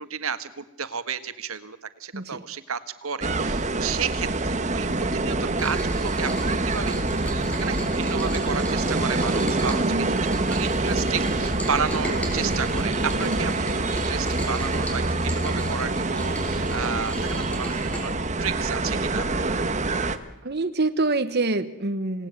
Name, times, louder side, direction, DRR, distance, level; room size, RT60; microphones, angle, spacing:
voice 1, 0.0-6.9 7.2-10.1 10.5-18.1 18.4-19.5, right 6 dB, 80° right, 11 dB, 1.6 m, -32 dB
sound 1, 3.2-20.2, right 2 dB, 35° right, 1.4 m, -26 dB
Rain, 5.6-18.0, equal, 5° left, 5.8 m, -37 dB
voice 2, 9.8-10.2 13.1-13.4 20.4-22.3, right 2 dB, 50° right, 9 dB, 1.3 m, -26 dB
27.5 x 18.5 x 9.6 m, 0.91 s
head